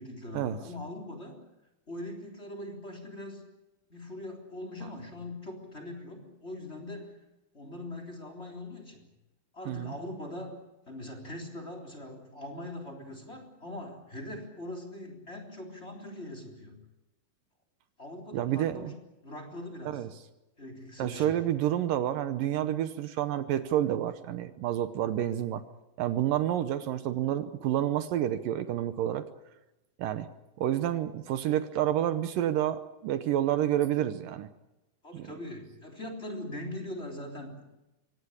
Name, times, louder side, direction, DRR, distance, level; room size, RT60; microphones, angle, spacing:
voice 1, 0.0-1.5 1.9-3.5 3.9-7.2 7.5-9.1 9.5-10.6 10.9-16.8 18.0-19.0 19.2-20.1 20.6-21.3 35.0-37.6, left 1 dB, 20° left, 5 dB, 3.7 m, -41 dB
voice 2, 18.3-18.9 19.9-20.1 21.0-25.6 26.0-29.3 30.0-30.3 30.6-34.5 35.1-35.3, right 11 dB, 75° right, 11 dB, 2.5 m, -29 dB
24.5 x 18.0 x 10.0 m, 1.0 s
omnidirectional pair, 4.1 m